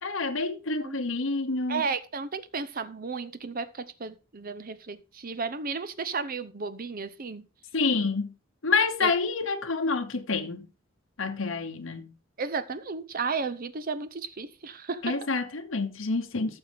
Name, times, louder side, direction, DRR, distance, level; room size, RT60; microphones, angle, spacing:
voice 1, 0.0-1.8 7.7-8.3 8.6-10.7 11.2-12.1 15.0-16.6, left 4 dB, 65° left, 1.1 m, -28 dB
voice 2, 1.7-7.5 9.0-9.1 12.4-15.2, right 4 dB, 45° right, 0.8 m, -33 dB
14.5 x 6.3 x 3.5 m
head